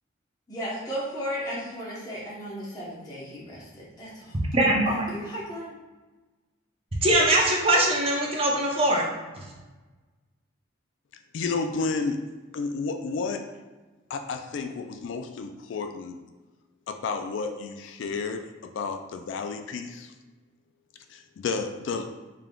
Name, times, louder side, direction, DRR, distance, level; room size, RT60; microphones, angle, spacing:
voice 1, 0.5-4.3 4.9-5.7, equal, 20° left, -7 dB, 0.9 m, -35 dB
voice 2, 4.5-5.1 7.0-9.1 9.4-9.5, right 1 dB, 30° right, -2 dB, 0.6 m, -22 dB
voice 3, 11.3-12.2 12.5-13.5 14.1-16.2 16.9-20.1 21.1-22.1, left 4 dB, 70° left, 6 dB, 0.3 m, -31 dB
3.6 x 3.5 x 2.2 m, 1.2 s
head